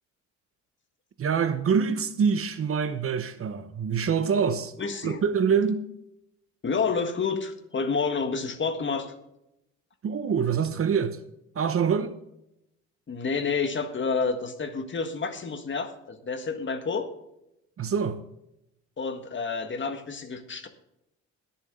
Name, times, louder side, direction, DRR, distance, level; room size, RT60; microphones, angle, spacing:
voice 1, 1.2-4.7 5.0-5.9 10.0-11.2 11.5-12.1 17.8-18.2, right 6 dB, 45° right, 1.0 m, -25 dB
voice 2, 4.8-5.2 6.6-9.1 13.1-17.1 19.0-20.7, left 5 dB, 40° left, 1.7 m, -29 dB
20.5 x 7.2 x 3.8 m
cardioid pair, 90°, 30 cm